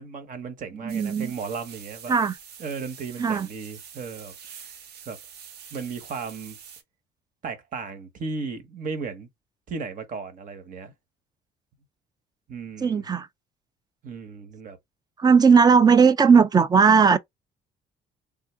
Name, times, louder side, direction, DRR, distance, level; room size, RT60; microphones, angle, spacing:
voice 1, 0.0-2.1 2.6-4.8 5.1-5.2 5.7-6.6 7.4-9.3 9.7-10.9 12.5-13.1 14.0-14.8, right 5 dB, 50° right, 1.2 m, -35 dB
voice 2, 0.7-1.3 2.1-2.4 3.2-3.5 12.8-13.3 15.2-17.2, right 5 dB, 25° right, 0.4 m, -17 dB
sound 1, 0.9-6.8, right 7 dB, 70° right, 1.0 m, -45 dB
3.6 x 2.4 x 3.3 m
cardioid pair, 110°, 17 cm